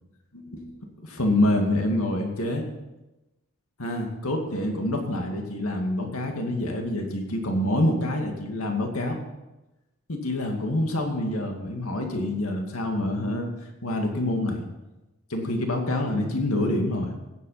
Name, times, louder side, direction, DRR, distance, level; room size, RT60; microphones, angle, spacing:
voice 1, 0.3-0.7 1.0-2.6 3.8-9.2 10.1-13.5 13.8-14.6 15.3-17.1, left 1 dB, 80° left, 2 dB, 2.3 m, -26 dB
16.0 x 7.9 x 5.8 m, 1.0 s
head